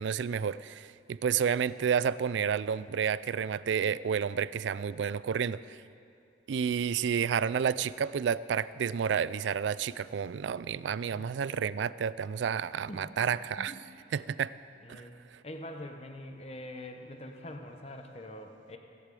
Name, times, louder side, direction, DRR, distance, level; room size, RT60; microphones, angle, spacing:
voice 1, 0.0-5.8 6.5-13.7 14.1-14.5 14.9-15.0, right 7 dB, 75° right, 18 dB, 0.3 m, -30 dB
voice 2, 11.1-11.8 12.9-13.2 13.6-13.8 14.1-14.2 14.8-15.1 15.4-18.8, left 1 dB, 35° left, 5 dB, 0.9 m, -44 dB
17.0 x 8.2 x 7.6 m, 2.5 s
head